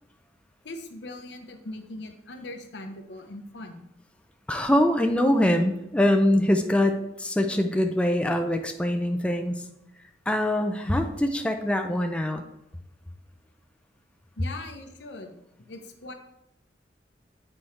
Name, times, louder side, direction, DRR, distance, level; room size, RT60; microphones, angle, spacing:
voice 1, 0.6-3.9 14.4-15.3 15.6-16.1, left 2 dB, 75° left, 5 dB, 0.8 m, -40 dB
voice 2, 4.5-9.6 10.3-12.4, left 1 dB, 5° left, 5 dB, 0.4 m, -23 dB
7.6 x 4.4 x 3.2 m, 0.85 s
head